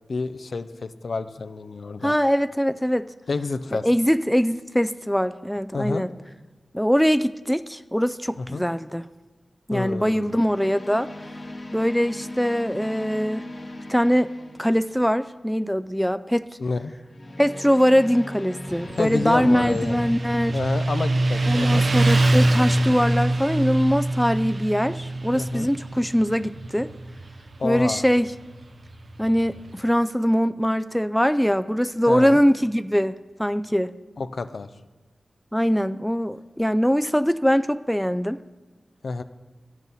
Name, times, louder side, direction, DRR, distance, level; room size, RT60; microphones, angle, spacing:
voice 1, 0.1-2.1 3.3-3.9 5.7-6.0 8.4-8.6 9.7-10.3 16.6-16.9 19.0-20.0 20.5-21.9 25.3-25.7 27.6-28.0 32.1-32.4 34.2-34.7 39.0-39.2, left 3 dB, 70° left, 11 dB, 0.4 m, -29 dB
voice 2, 2.0-3.1 3.7-6.1 6.7-9.0 9.7-11.1 11.7-13.5 13.9-14.3 14.6-16.5 17.4-20.6 21.5-26.9 27.6-28.3 29.2-33.1 33.4-33.9 35.5-38.4, equal, ahead, 12 dB, 0.3 m, -22 dB
sound 1, 8.2-8.6 10.2-15.3 17.1-20.1, left 1 dB, 50° left, 1.4 m, -38 dB
Motorcycle, 18.7-29.8, right 2 dB, 65° right, 0.7 m, -24 dB
10.5 x 6.3 x 5.4 m, 1.2 s
cardioid pair, 40°, 0 cm